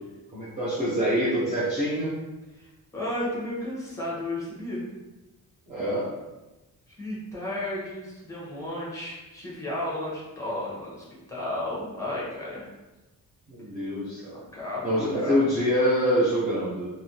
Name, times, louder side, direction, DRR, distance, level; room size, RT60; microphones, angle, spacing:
voice 1, 0.3-2.1 5.7-6.1 13.5-14.4 14.8-16.9, equal, 20° right, -10 dB, 0.7 m, -25 dB
voice 2, 2.5-4.8 7.0-12.7 14.5-15.5, left 1 dB, 10° left, -6 dB, 1.0 m, -33 dB
3.3 x 2.6 x 2.8 m, 1.1 s
wide cardioid pair, 160°, 35 cm